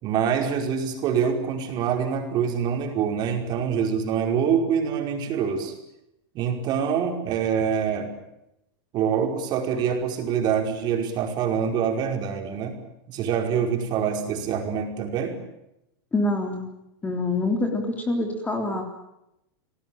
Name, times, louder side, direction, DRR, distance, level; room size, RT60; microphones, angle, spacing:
voice 1, 0.0-5.7 6.3-8.1 8.9-12.8 13.1-15.4, right 7 dB, 35° right, 3 dB, 5.2 m, -25 dB
voice 2, 16.1-16.7 17.0-18.8, left 2 dB, 10° left, 4 dB, 3.5 m, -25 dB
29.5 x 19.0 x 9.0 m, 0.86 s
supercardioid pair, 155°, 13 cm